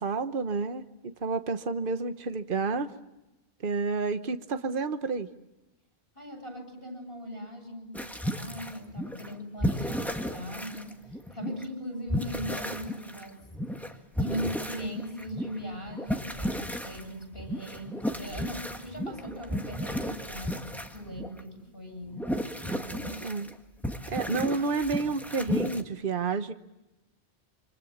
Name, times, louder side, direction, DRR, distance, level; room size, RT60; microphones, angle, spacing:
voice 1, 0.0-2.9 3.6-5.3 23.2-23.5 24.1-26.5, right 4 dB, 55° right, 9 dB, 1.3 m, -30 dB
voice 2, 6.1-13.5 14.2-22.3 22.6-23.3, equal, 60° left, 4 dB, 8.1 m, -39 dB
sound 1, 7.9-9.3 9.6-11.6 12.1-21.4 22.1-23.6 23.8-25.8, equal, ahead, 1.8 m, -34 dB
28.0 x 26.0 x 7.3 m, 0.96 s
omnidirectional pair, 1.1 m